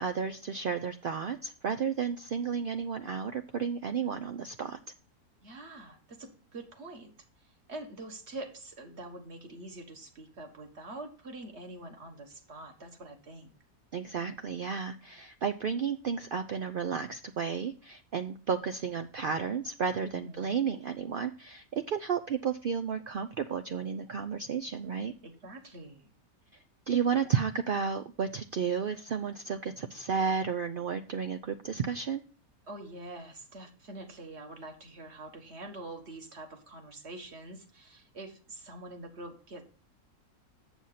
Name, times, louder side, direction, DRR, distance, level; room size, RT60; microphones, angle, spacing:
voice 1, 0.0-4.8 13.9-25.1 26.9-32.2, right 6 dB, 80° right, 8 dB, 0.4 m, -32 dB
voice 2, 5.4-7.1 7.4-13.5 20.1-20.6 25.2-26.1 32.7-39.7, right 2 dB, 50° right, 4 dB, 1.7 m, -45 dB
7.5 x 7.1 x 4.0 m, 0.40 s
omnidirectional pair, 1.6 m